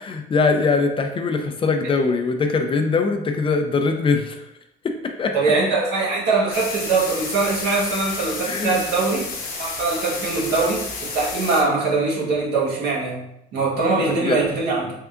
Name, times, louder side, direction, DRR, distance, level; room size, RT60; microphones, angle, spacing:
voice 1, 0.1-4.4 4.8-5.3 8.4-8.9 14.0-14.4, left 4 dB, 30° left, 5 dB, 0.4 m, -22 dB
voice 2, 5.3-9.3 9.6-13.3 13.5-14.9, right 3 dB, 75° right, -4 dB, 1.2 m, -22 dB
sound 1, 6.5-11.6, left 4 dB, 60° left, 0.9 m, -31 dB
3.6 x 3.4 x 2.4 m, 0.82 s
cardioid pair, 110°, 17 cm